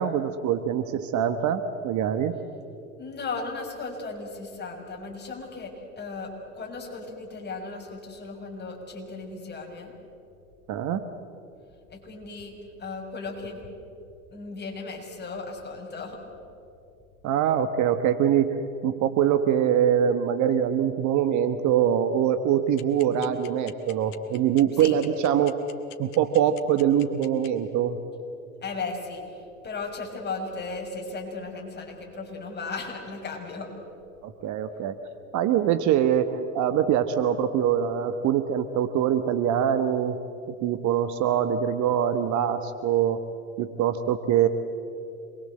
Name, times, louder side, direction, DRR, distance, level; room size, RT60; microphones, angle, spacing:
voice 1, 0.0-2.3 10.7-11.0 17.2-25.6 26.0-28.0 34.2-35.0 35.3-40.2 40.6-43.2 43.6-44.5, right 9 dB, 40° right, 10 dB, 1.4 m, -24 dB
voice 2, 3.0-9.9 11.9-13.6 14.3-16.2 24.8-24.9 28.6-33.7, left 3 dB, 25° left, 0 dB, 6.5 m, -36 dB
sound 1, 22.8-27.5, left 12 dB, 50° left, 2.3 m, -44 dB
27.0 x 22.0 x 7.8 m, 2.6 s
hypercardioid pair, 85°, 43 cm